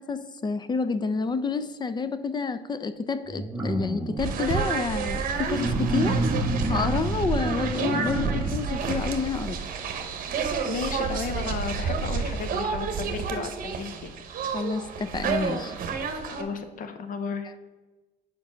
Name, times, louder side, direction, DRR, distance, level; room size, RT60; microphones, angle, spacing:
voice 1, 0.0-6.2 6.6-9.6 14.4-15.7, left 4 dB, 25° left, 12 dB, 0.5 m, -29 dB
sound 1, 3.3-4.5 5.4-8.6 9.2-9.3, right 2 dB, 15° right, 1.2 m, -29 dB
sound 2, 4.2-16.4, right 5 dB, 55° right, 0.9 m, -30 dB
voice 2, 10.6-14.1 16.3-17.5, left 5 dB, 55° left, 9 dB, 1.0 m, -33 dB
7.1 x 5.2 x 5.6 m, 1.2 s
cardioid pair, 110°, 17 cm